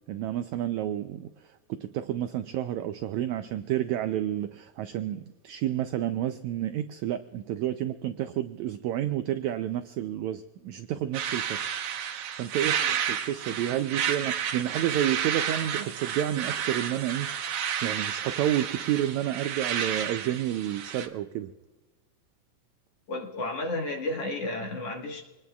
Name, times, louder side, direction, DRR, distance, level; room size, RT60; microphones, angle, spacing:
voice 1, 0.1-1.3 1.7-11.6 11.9-17.3 17.8-21.5, right 12 dB, 80° right, 9 dB, 1.6 m, -30 dB
sound 1, 11.1-21.1, right 8 dB, 65° right, 2.2 m, -31 dB
voice 2, 23.1-25.2, left 2 dB, 55° left, 1 dB, 2.2 m, -32 dB
26.0 x 20.0 x 2.3 m, 1.2 s
omnidirectional pair, 3.8 m